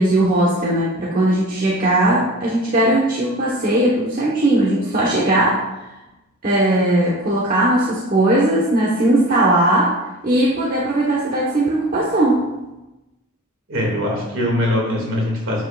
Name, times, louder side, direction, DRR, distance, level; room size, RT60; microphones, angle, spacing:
voice 1, 0.0-5.7 6.4-9.9 10.2-12.4, right 1 dB, 40° right, -5 dB, 1.2 m, -18 dB
voice 2, 13.7-15.6, left 1 dB, 60° right, -2 dB, 2.3 m, -21 dB
7.7 x 7.4 x 2.5 m, 1.0 s
head